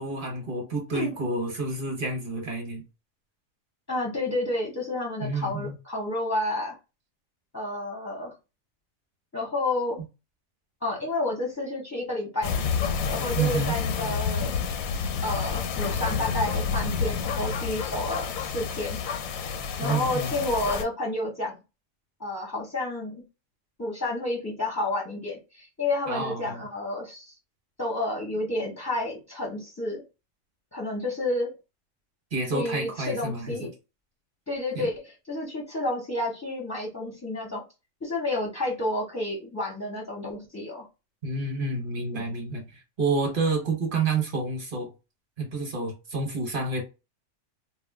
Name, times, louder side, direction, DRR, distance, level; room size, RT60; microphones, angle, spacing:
voice 1, 0.0-2.8 5.2-5.7 13.4-13.7 19.8-20.3 26.1-26.6 32.3-33.7 34.8-34.9 41.2-44.9 45.4-46.8, right 3 dB, 45° right, 0.9 m, -29 dB
voice 2, 3.9-6.7 7.5-8.3 9.3-10.0 10.8-12.7 13.1-14.6 15.2-19.0 19.8-21.6 22.2-23.2 23.8-27.3 27.8-30.0 30.7-31.5 32.5-33.7 34.5-37.6 38.0-40.9 42.1-42.2, left 2 dB, 20° left, 0.4 m, -30 dB
sound 1, 12.4-20.8, left 6 dB, 80° left, 1.0 m, -29 dB
2.4 x 2.1 x 3.5 m
omnidirectional pair, 1.4 m